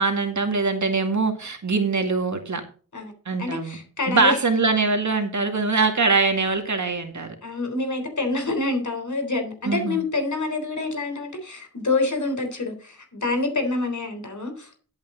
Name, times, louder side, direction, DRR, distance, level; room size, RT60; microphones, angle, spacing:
voice 1, 0.0-2.6 3.3-3.8 4.1-7.4 9.6-10.0, right 4 dB, 50° right, 5 dB, 2.1 m, -23 dB
voice 2, 3.4-4.4 7.4-14.8, left 3 dB, 55° left, 5 dB, 3.8 m, -27 dB
11.0 x 8.7 x 3.9 m, 0.39 s
wide cardioid pair, 75°, 36 cm